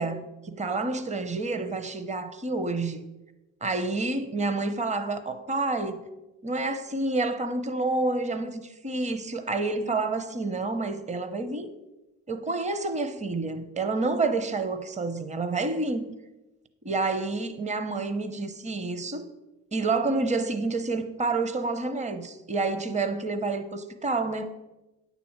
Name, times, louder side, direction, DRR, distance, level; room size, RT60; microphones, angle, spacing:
voice 1, 0.0-3.0 3.6-6.0 6.4-11.7 12.3-16.1 16.8-19.2 19.7-24.5, right 3 dB, 25° right, 0.8 m, -29 dB
9.7 x 4.2 x 7.2 m
cardioid pair, 90°, 30 cm